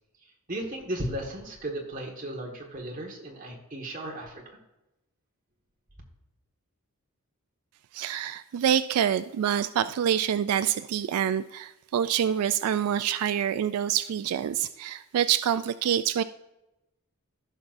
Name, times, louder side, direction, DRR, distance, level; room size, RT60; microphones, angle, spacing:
voice 1, 0.5-4.4, right 1 dB, 35° right, 0 dB, 1.6 m, -35 dB
voice 2, 7.9-16.2, right 9 dB, 85° right, 13 dB, 0.3 m, -26 dB
15.0 x 6.0 x 2.6 m, 0.95 s
head